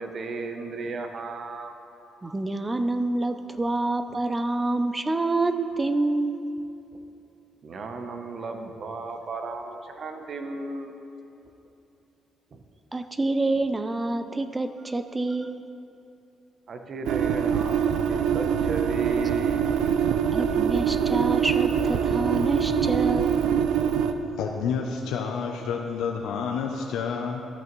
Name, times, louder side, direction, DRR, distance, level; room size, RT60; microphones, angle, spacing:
voice 1, 0.0-1.7 7.6-10.9 12.5-12.6 16.7-19.9, right 3 dB, 55° right, 5 dB, 0.8 m, -34 dB
voice 2, 2.2-6.4 12.9-15.6 20.3-23.4, right 2 dB, 20° right, 9 dB, 0.4 m, -27 dB
sound 1, 17.0-24.1, right 8 dB, 85° right, 0.4 m, -24 dB
voice 3, 24.4-27.4, left 6 dB, 85° left, 2 dB, 0.5 m, -29 dB
13.5 x 5.9 x 3.1 m, 2.8 s
cardioid pair, 90°, 0 cm